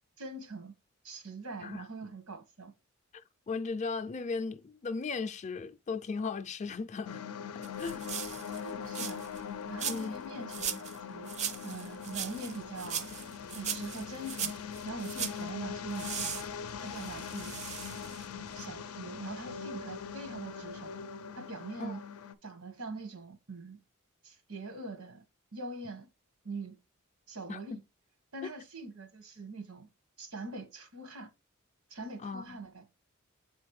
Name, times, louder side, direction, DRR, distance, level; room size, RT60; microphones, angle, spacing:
voice 1, 0.2-0.7 1.0-2.7 8.6-9.2 9.7-11.3 11.6-13.1 13.5-14.5 14.8-16.4 16.8-17.6 17.9-18.0 18.4-20.9 21.3-22.0 22.4-23.8 24.2-25.2 25.5-26.1 26.4-26.7 27.3-27.8 28.3-29.9 30.2-31.3 31.9-32.8, right 3 dB, 90° right, 1.3 m, -43 dB
voice 2, 3.1-7.2 7.5-8.1 9.9-10.2 21.8-22.0 27.5-27.6 32.2-32.6, left 4 dB, 35° left, 0.4 m, -37 dB
sound 1, 7.0-22.3, left 7 dB, 90° left, 0.5 m, -42 dB
sound 2, 7.6-9.4 9.8-10.2 10.5-11.0 11.3-15.4 16.0-18.3 18.6-18.7, right 8 dB, 35° right, 0.4 m, -39 dB
7.7 x 4.2 x 3.2 m
head